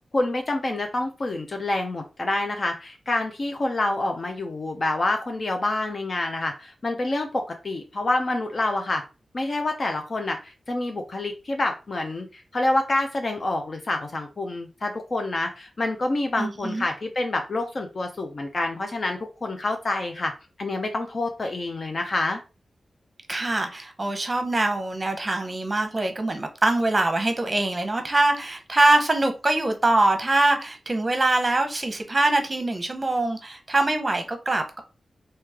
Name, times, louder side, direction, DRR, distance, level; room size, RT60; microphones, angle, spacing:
voice 1, 0.1-9.0 9.3-20.3 20.6-22.4, left 2 dB, 45° left, 0.5 m, -27 dB
voice 2, 16.4-16.8 23.3-34.8, right 2 dB, 30° right, 0.8 m, -23 dB
3.1 x 2.8 x 3.4 m
wide cardioid pair, 85°, 0 cm